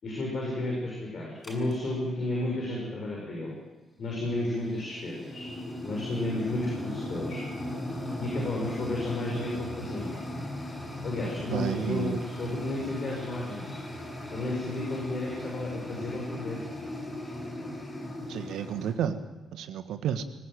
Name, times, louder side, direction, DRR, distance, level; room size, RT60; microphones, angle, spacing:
voice 1, 0.0-3.6 4.0-5.5 5.8-7.4 8.2-10.1 11.0-13.7 14.3-16.6, left 1 dB, 45° left, -2 dB, 7.2 m, -32 dB
sound 1, 1.4-1.7 4.0-18.9, left 1 dB, 20° left, 7.4 m, -38 dB
voice 2, 11.5-12.2 18.3-19.2 19.5-20.2, right 9 dB, 60° right, 11 dB, 1.7 m, -31 dB
24.0 x 18.5 x 9.4 m, 1.2 s
figure-of-eight pair, 45°, 0 cm